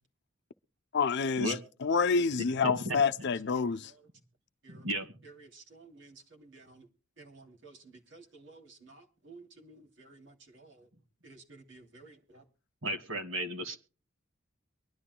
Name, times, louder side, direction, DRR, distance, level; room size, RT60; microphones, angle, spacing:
voice 1, 0.9-1.6 1.8-3.9, left 5 dB, 60° left, 0.6 m, -28 dB
voice 2, 2.6-3.0 4.7-5.1 12.8-13.8, right 1 dB, 90° right, 2.1 m, -34 dB
voice 3, 5.5-6.9 7.2-7.8 8.1-10.9 11.2-12.4, right 3 dB, 65° right, 2.8 m, -54 dB
23.5 x 11.5 x 2.2 m
head